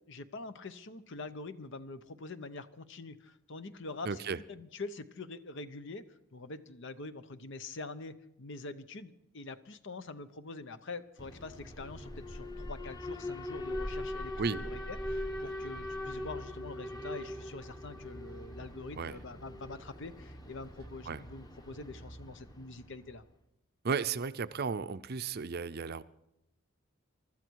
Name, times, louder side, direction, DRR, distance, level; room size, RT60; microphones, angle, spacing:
voice 1, 0.1-4.2 4.5-6.0 6.3-23.2, left 3 dB, 65° left, 12 dB, 0.9 m, -45 dB
voice 2, 4.1-4.4 14.4-14.6 19.0-19.2 21.1-21.2 23.8-26.0, right 5 dB, 50° right, 13 dB, 0.6 m, -34 dB
Alarm, 11.2-23.2, left 1 dB, 20° left, 1.1 m, -41 dB
23.5 x 13.0 x 4.7 m, 0.84 s
head